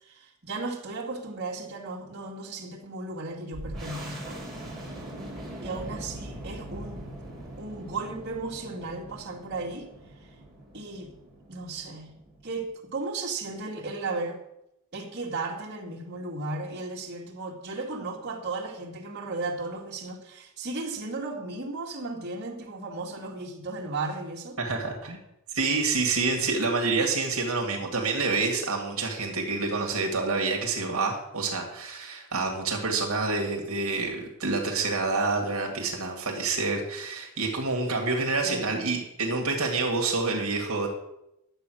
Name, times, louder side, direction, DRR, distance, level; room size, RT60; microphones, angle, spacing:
voice 1, 0.0-4.4 5.6-7.1 7.6-9.9 10.7-11.1 11.5-12.1 12.4-14.4 14.9-24.6 38.4-39.0, right 3 dB, 50° right, -4 dB, 2.2 m, -35 dB
sound 1, 3.5-12.7, right 1 dB, ahead, 3.7 m, -41 dB
voice 2, 24.6-25.2 25.5-40.9, right 3 dB, 70° right, 1 dB, 2.1 m, -27 dB
11.0 x 7.7 x 6.4 m, 0.86 s
head